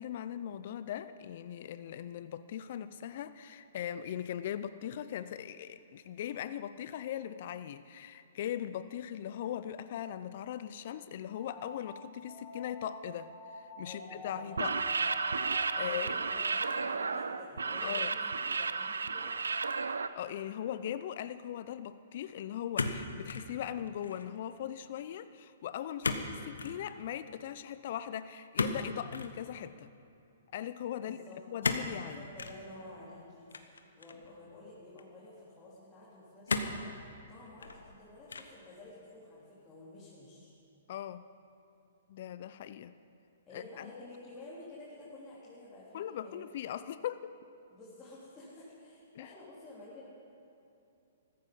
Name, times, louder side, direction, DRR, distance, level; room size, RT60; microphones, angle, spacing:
voice 1, 0.0-14.8 15.8-16.1 17.8-18.1 20.1-29.9 30.5-31.2 31.5-32.2 40.9-41.3 42.1-42.9 43.5-43.9 45.9-47.3 49.1-49.3, left 10 dB, 55° left, 13 dB, 0.5 m, -39 dB
sound 1, 11.3-20.7, left 1 dB, 10° right, 4.0 m, -50 dB
voice 2, 13.8-15.1 15.7-19.5 31.0-31.4 32.0-36.9 37.3-40.5 43.5-46.5 46.7-46.8 47.7-50.1, left 2 dB, 20° left, -9 dB, 3.7 m, -51 dB
sound 2, 14.5-20.1, right 4 dB, 85° right, 0.6 m, -33 dB
sound 3, 22.7-23.5 23.9-24.3 26.0-26.3 26.6-26.8 28.5-29.3 31.6-31.9 32.4-32.6 33.5-34.3 35.0-35.1 36.5-36.9 37.5-37.9 38.3-38.6, left 4 dB, 85° left, 1.1 m, -34 dB
15.0 x 14.5 x 5.5 m, 2.8 s
hypercardioid pair, 125°, 0 cm